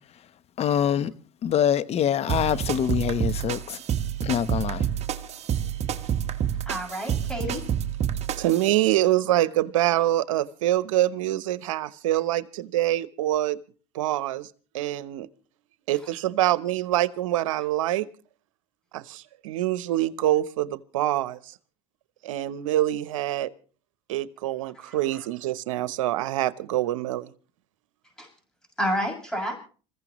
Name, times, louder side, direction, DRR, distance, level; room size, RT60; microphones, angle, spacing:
voice 1, 0.6-1.1 1.4-3.8 4.2-4.8, left 9 dB, 40° left, 1.0 m, -24 dB
sound 1, 2.3-8.7, right 9 dB, 40° right, 1.4 m, -28 dB
voice 2, 6.7-7.6 24.7-25.2 28.2-28.3 28.8-29.5, equal, 5° left, 6.5 m, -30 dB
voice 3, 8.4-13.6 13.9-14.5 14.7-15.3 15.9-18.1 18.9-21.5 22.2-23.5 24.1-27.3, right 14 dB, 90° right, 0.9 m, -25 dB
27.0 x 15.0 x 3.1 m
supercardioid pair, 100°, 16 cm